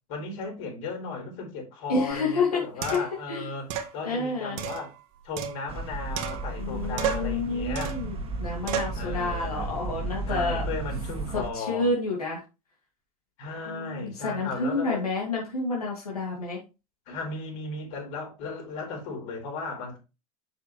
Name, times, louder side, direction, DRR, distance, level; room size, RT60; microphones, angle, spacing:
voice 1, 0.1-3.7 3.9-4.9 5.2-7.9 8.9-9.7 10.3-11.9 13.4-15.0 17.1-20.0, left 3 dB, 60° left, 4.2 m, -35 dB
voice 2, 1.9-2.6 2.9-3.0 3.3-3.5 4.1-4.7 6.6-10.7 11.3-12.4 13.7-16.6, left 3 dB, 90° left, 2.2 m, -29 dB
sound 1, 2.1-2.2 2.8-3.2 3.7-3.9 4.6-5.8 6.2-6.7 7.0-7.4 7.8-8.1 8.7-9.0, right 8 dB, 55° right, 1.5 m, -32 dB
sound 2, 5.7-11.5, right 2 dB, 30° right, 1.9 m, -34 dB
7.8 x 6.6 x 3.1 m
hypercardioid pair, 85°, 19 cm